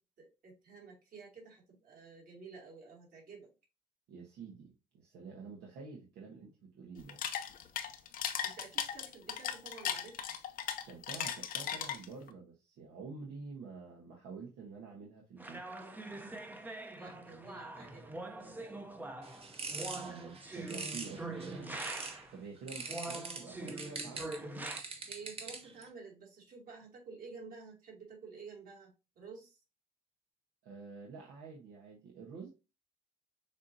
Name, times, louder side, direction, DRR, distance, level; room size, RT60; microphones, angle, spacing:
voice 1, 0.2-3.5 8.4-10.4 16.9-18.9 25.1-29.6, right 4 dB, 55° right, -2 dB, 2.7 m, -51 dB
voice 2, 4.1-7.2 10.8-15.7 19.9-21.9 22.3-24.7 30.6-32.5, right 4 dB, 80° right, -2 dB, 1.2 m, -48 dB
sound 1, 7.0-12.3, left 9 dB, 55° left, 0.6 m, -37 dB
sound 2, 15.4-22.4 22.9-24.8, right 2 dB, 10° right, 0.7 m, -44 dB
sound 3, 19.2-22.3 22.7-25.8, right 4 dB, 35° right, 1.1 m, -43 dB
7.0 x 2.8 x 2.7 m, 0.29 s
cardioid pair, 110°, 17 cm